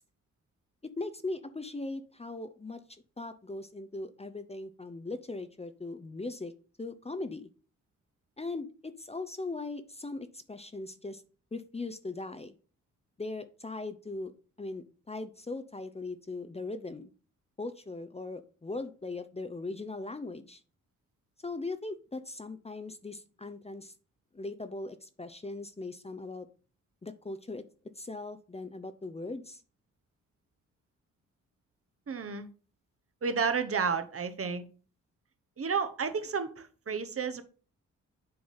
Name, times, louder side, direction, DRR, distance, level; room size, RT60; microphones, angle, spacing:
voice 1, 1.0-2.8 3.2-6.5 6.8-7.5 8.4-11.2 11.5-12.5 13.2-14.3 14.6-17.1 17.6-20.6 21.4-23.9 24.3-26.5 27.0-27.6 28.0-29.6, left 2 dB, 20° left, 0.7 m, -39 dB
voice 2, 32.1-32.5 33.2-34.7 35.6-37.4, right 5 dB, 45° right, 1.1 m, -31 dB
7.8 x 4.0 x 5.5 m
cardioid pair, 70°, 32 cm